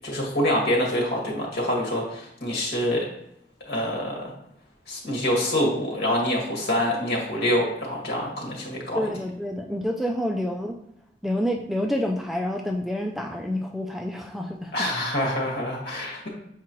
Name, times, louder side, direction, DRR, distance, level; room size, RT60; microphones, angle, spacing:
voice 1, 0.0-3.1 3.7-4.3 4.9-9.0 14.7-16.3, left 1 dB, 60° left, -2 dB, 2.0 m, -26 dB
voice 2, 8.9-10.8 11.2-14.9, left 1 dB, ahead, 2 dB, 0.4 m, -28 dB
7.3 x 4.7 x 3.0 m, 0.76 s
head